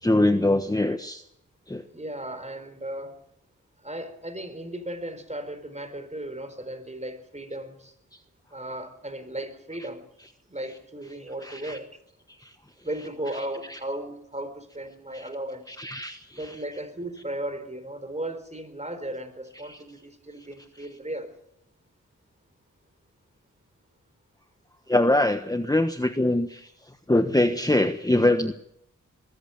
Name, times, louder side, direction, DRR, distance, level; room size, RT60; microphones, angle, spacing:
voice 1, 0.0-1.2 1.7-1.8 11.4-11.8 12.4-12.5 13.7-13.8 15.1-15.2 15.7-16.5 19.7-19.8 24.9-26.7 27.1-28.5, left 1 dB, 10° left, 8 dB, 1.2 m, -23 dB
voice 2, 1.9-3.1 3.8-7.9 8.5-10.1 10.5-12.0 12.8-15.7 16.4-21.3, right 1 dB, 20° right, 10 dB, 4.4 m, -36 dB
21.5 x 14.5 x 9.2 m, 0.75 s
cardioid pair, 60°, 32 cm